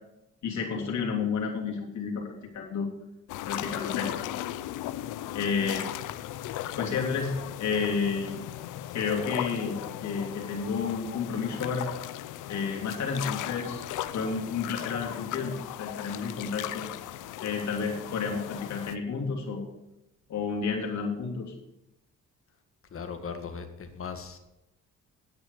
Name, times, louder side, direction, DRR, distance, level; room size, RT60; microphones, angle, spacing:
voice 1, 0.4-2.9 3.4-4.1 5.3-5.9 6.8-7.3 7.6-8.4 8.9-11.9 12.5-13.9 14.1-16.9 17.4-19.6 20.3-21.5, left 5 dB, 65° left, -1 dB, 3.1 m, -31 dB
sound 1, 3.3-19.0, left 13 dB, 85° left, 0.6 m, -37 dB
voice 2, 22.9-24.4, left 5 dB, 45° left, 7 dB, 1.8 m, -38 dB
9.7 x 8.9 x 6.5 m, 0.92 s
cardioid pair, 90°, 30 cm